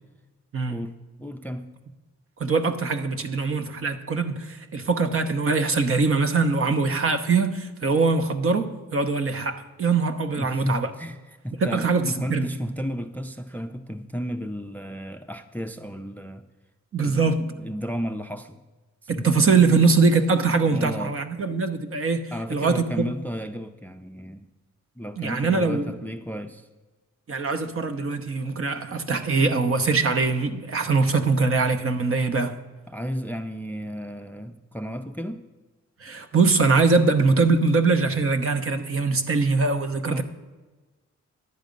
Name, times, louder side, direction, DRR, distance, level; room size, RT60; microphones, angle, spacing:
voice 1, 0.7-1.7 10.3-16.4 17.0-18.6 19.0-19.5 20.5-21.2 22.3-24.5 25.0-26.7 32.9-35.4 40.1-40.2, equal, 5° left, 9 dB, 0.4 m, -33 dB
voice 2, 2.4-10.9 11.6-12.5 16.9-17.4 19.1-22.2 22.5-23.1 25.2-25.9 27.3-32.6 36.0-40.2, right 4 dB, 50° right, 8 dB, 1.0 m, -22 dB
11.0 x 8.4 x 5.3 m, 1.2 s
cardioid pair, 105°, 29 cm